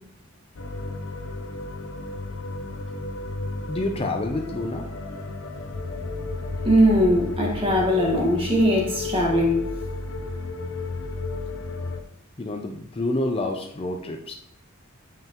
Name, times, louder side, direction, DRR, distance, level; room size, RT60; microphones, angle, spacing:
sound 1, 0.5-12.0, left 3 dB, 65° left, 0.7 m, -33 dB
voice 1, 3.7-5.2 12.4-14.3, left 2 dB, 25° left, 0.5 m, -28 dB
voice 2, 6.6-9.7, equal, 25° right, 1.6 m, -20 dB
7.6 x 5.5 x 3.0 m
head